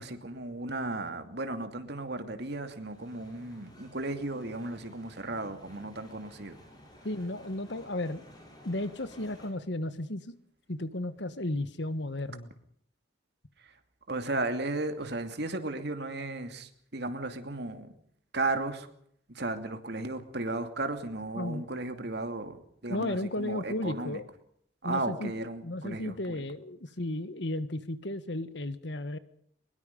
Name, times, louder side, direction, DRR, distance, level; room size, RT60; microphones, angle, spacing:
voice 1, 0.0-6.6 13.6-13.8 14.1-18.0 18.3-18.9 19.3-24.2 24.8-26.4, right 2 dB, 55° right, 7 dB, 2.6 m, -35 dB
sound 1, 2.7-9.5, equal, 20° left, 7.9 m, -54 dB
voice 2, 7.0-8.2 8.6-10.3 10.7-12.5 21.3-21.6 22.9-24.3 24.8-25.3 25.6-29.2, left 1 dB, 60° left, 13 dB, 1.5 m, -34 dB
23.0 x 21.5 x 5.4 m, 0.67 s
head